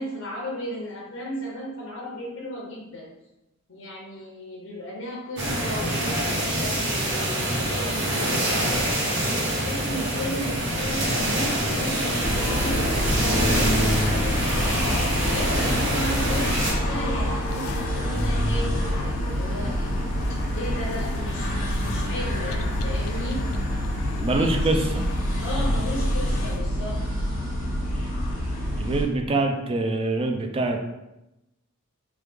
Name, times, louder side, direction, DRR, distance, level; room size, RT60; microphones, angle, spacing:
voice 1, 0.0-3.1 3.7-9.0 9.4-14.7 15.2-19.8 20.3-23.4 24.3-24.9 25.4-27.0, equal, 65° left, -4 dB, 0.7 m, -35 dB
sound 1, 5.4-16.7, right 1 dB, 60° right, 0.9 m, -26 dB
sound 2, 10.5-26.6, left 3 dB, 85° left, 0.3 m, -37 dB
sound 3, 12.2-29.0, equal, 40° left, 1.2 m, -26 dB
voice 2, 24.2-25.0 28.7-30.8, right 2 dB, 25° right, 3 dB, 0.3 m, -24 dB
3.1 x 2.3 x 3.4 m, 0.93 s
head